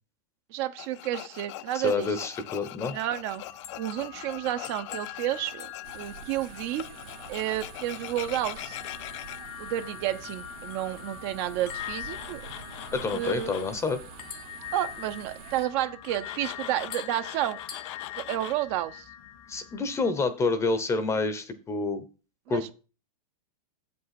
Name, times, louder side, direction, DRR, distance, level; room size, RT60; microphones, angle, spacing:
voice 1, 0.5-2.1 2.9-3.4 3.8-5.7 5.9-6.8 7.3-8.8 9.6-12.4 13.1-13.6 14.7-17.6 18.2-19.1 22.5-22.7, right 13 dB, 45° right, 9 dB, 0.8 m, -31 dB
Tools, 0.8-9.4 11.5-13.8 16.0-18.5, left 15 dB, 50° left, 0.5 m, -42 dB
voice 2, 1.7-3.0 12.9-14.0 19.5-22.0 22.5-22.7, left 3 dB, 15° left, 11 dB, 0.8 m, -28 dB
sound 1, 3.2-20.1, left 11 dB, 75° left, 2.3 m, -43 dB
sound 2, 5.8-15.7, right 9 dB, 65° right, 1.3 m, -47 dB
7.6 x 5.5 x 5.8 m, 0.34 s
supercardioid pair, 150°, 20 cm